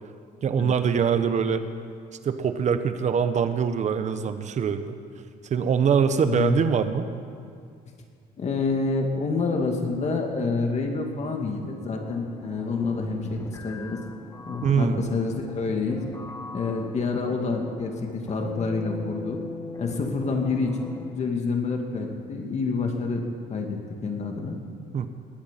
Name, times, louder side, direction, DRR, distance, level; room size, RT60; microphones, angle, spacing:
voice 1, 0.4-1.6 2.2-4.9 5.5-7.1 14.6-15.0 24.9-25.1, right 7 dB, 45° right, 10 dB, 1.1 m, -23 dB
voice 2, 6.2-6.6 8.4-14.0 14.5-16.0 16.5-19.4 19.8-23.2 23.5-24.6, left 4 dB, 40° left, 2 dB, 2.3 m, -28 dB
sound 1, 11.9-21.5, left 3 dB, 20° left, 0.9 m, -40 dB
20.0 x 9.1 x 7.5 m, 2.2 s
cardioid pair, 110°, 17 cm